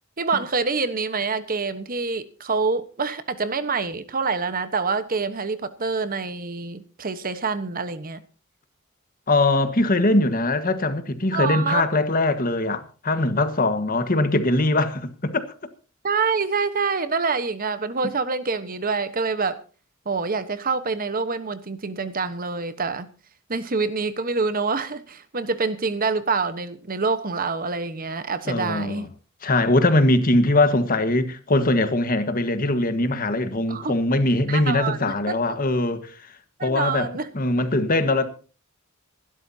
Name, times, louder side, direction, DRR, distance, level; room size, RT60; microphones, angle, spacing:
voice 1, 0.2-8.2 11.3-11.8 16.0-19.6 20.0-23.1 23.5-29.1 33.7-34.0 34.5-35.4 36.6-37.3, right 4 dB, 45° right, 1.2 m, -26 dB
voice 2, 9.3-15.4 28.5-29.0 29.4-36.1 36.6-37.1 37.3-38.3, left 2 dB, 45° left, 1.5 m, -21 dB
26.5 x 12.5 x 2.8 m
head